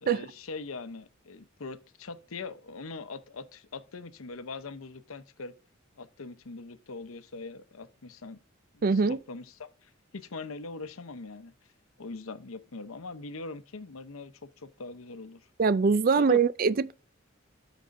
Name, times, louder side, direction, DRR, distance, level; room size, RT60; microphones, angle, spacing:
voice 1, 0.0-5.5 6.0-8.4 8.7-11.5 12.0-15.5 16.2-16.4, left 3 dB, 90° left, 0.8 m, -41 dB
voice 2, 8.8-9.2 15.6-16.9, right 5 dB, 45° right, 0.4 m, -23 dB
13.5 x 5.1 x 2.6 m
head